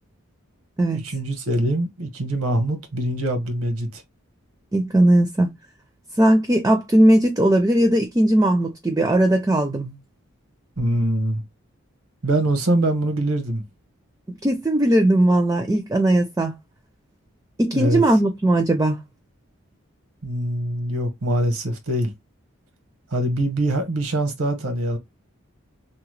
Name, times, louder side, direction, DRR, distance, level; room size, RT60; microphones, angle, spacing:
voice 1, 0.9-4.0 10.8-11.4 12.2-13.6 17.7-18.0 20.2-22.1 23.1-25.0, right 1 dB, 90° right, 0.9 m, -23 dB
voice 2, 4.7-5.5 6.2-10.0 14.3-16.5 17.6-19.0, right 1 dB, 15° right, 0.4 m, -18 dB
2.8 x 2.1 x 3.0 m
head